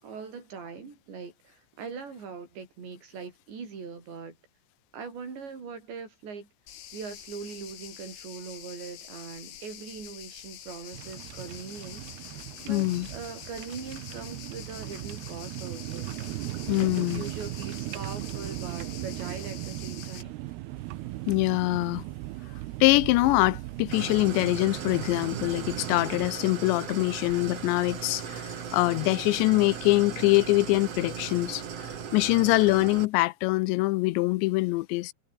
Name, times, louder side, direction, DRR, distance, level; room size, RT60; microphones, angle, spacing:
voice 1, 0.0-4.4 4.9-6.5 6.9-12.1 12.7-16.1 16.8-20.4, right 5 dB, 65° right, 8.7 m, -41 dB
sound 1, 6.7-20.2, left 11 dB, 65° left, 4.2 m, -46 dB
sound 2, 10.9-26.3, right 17 dB, 85° right, 2.3 m, -38 dB
voice 2, 12.7-13.1 16.7-17.2 21.3-22.0 22.8-31.6 32.1-35.1, left 21 dB, 80° left, 2.7 m, -24 dB
Idling, 23.9-33.0, right 7 dB, 45° right, 2.4 m, -38 dB
omnidirectional pair, 5.5 m